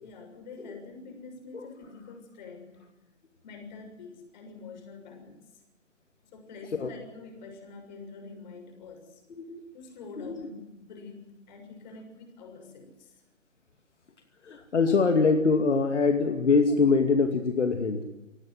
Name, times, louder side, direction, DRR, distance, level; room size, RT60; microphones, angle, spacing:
voice 1, 0.0-2.8 3.4-5.5 6.3-9.2 9.7-13.2, left 4 dB, 35° left, 5 dB, 6.8 m, -46 dB
voice 2, 9.3-9.6 10.2-10.5 14.4-18.0, left 4 dB, 65° left, 5 dB, 2.5 m, -24 dB
24.5 x 18.0 x 7.8 m, 0.98 s
figure-of-eight pair, 145°, 38 cm